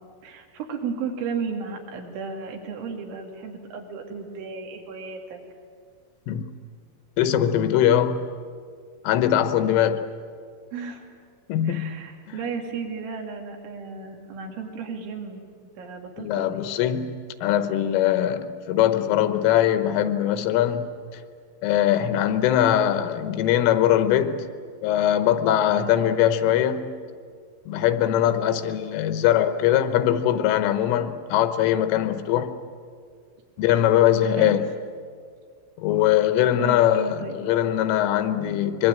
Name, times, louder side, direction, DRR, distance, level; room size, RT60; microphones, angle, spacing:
voice 1, 0.2-5.4 10.7-11.1 11.6-15.4 15.8-16.7 25.7-26.1 34.4-34.6 36.4-37.4, right 5 dB, 70° right, 1 dB, 4.9 m, -34 dB
voice 2, 7.2-8.3 9.1-10.0 11.5-11.9 16.2-21.2 21.6-24.5 24.8-26.9 27.7-32.5 33.6-34.7 35.8-38.9, left 11 dB, 90° left, 9 dB, 3.7 m, -21 dB
25.0 x 22.5 x 9.0 m, 2.1 s
omnidirectional pair, 5.7 m